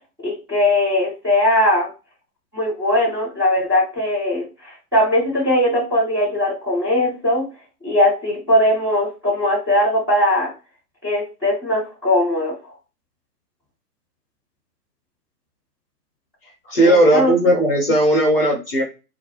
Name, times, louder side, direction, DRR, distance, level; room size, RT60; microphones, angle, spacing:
voice 1, 0.2-1.9 2.5-7.4 7.8-10.5 11.0-12.5 16.8-17.4, left 1 dB, 5° right, -13 dB, 1.0 m, -19 dB
voice 2, 16.7-18.8, right 1 dB, 35° left, -2 dB, 0.8 m, -16 dB
2.3 x 2.1 x 3.0 m, 0.30 s
figure-of-eight pair, 145°, 48 cm